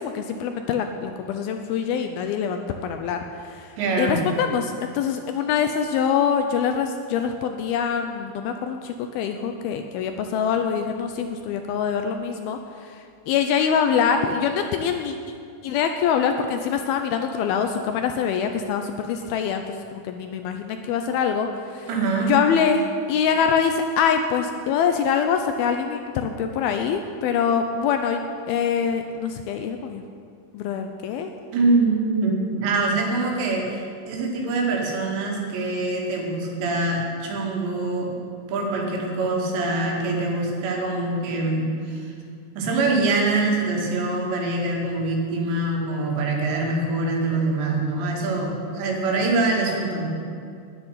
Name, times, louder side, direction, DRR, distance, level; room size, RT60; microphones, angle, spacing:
voice 1, 0.0-15.2 15.6-21.9 22.2-28.2 28.5-30.0 30.5-31.3, left 7 dB, 80° left, 6 dB, 2.3 m, -24 dB
voice 2, 3.8-4.2 21.9-22.3 31.5-38.2 38.5-42.1 42.5-50.1, right 3 dB, 85° right, -1 dB, 4.4 m, -24 dB
10.5 x 9.7 x 9.9 m, 2.3 s
omnidirectional pair, 4.9 m